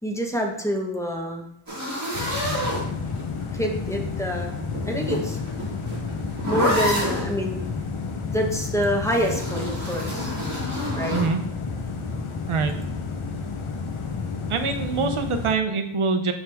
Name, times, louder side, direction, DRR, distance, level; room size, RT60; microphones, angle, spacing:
voice 1, 0.0-1.5 3.5-4.6 4.9-5.4 6.5-7.6 8.3-10.3 11.0-11.2, equal, 5° left, 0 dB, 1.2 m, -26 dB
sound 1, 1.7-3.4 4.6-7.3 9.0-11.3, equal, 35° right, 2.6 m, -28 dB
sound 2, 2.1-15.5, left 4 dB, 75° left, 0.9 m, -31 dB
voice 2, 12.5-12.8 14.5-16.3, right 4 dB, 80° right, 7 dB, 0.7 m, -24 dB
8.7 x 3.7 x 3.4 m, 0.75 s
wide cardioid pair, 65°, 49 cm